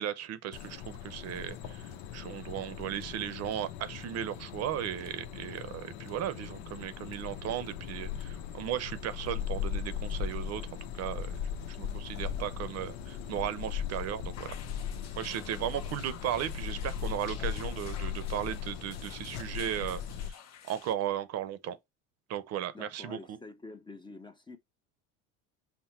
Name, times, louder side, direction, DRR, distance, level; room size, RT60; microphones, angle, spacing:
voice 1, 0.0-10.6 10.9-14.5 15.2-21.8 22.3-23.4, right 10 dB, 50° right, 0.7 m, -36 dB
sound 1, 0.5-20.3, left 8 dB, 85° left, 0.8 m, -38 dB
sound 2, 14.3-20.9, left 8 dB, 50° left, 0.9 m, -50 dB
voice 2, 22.7-24.6, left 3 dB, 15° left, 0.6 m, -48 dB
5.8 x 2.1 x 4.3 m
cardioid pair, 115°, 33 cm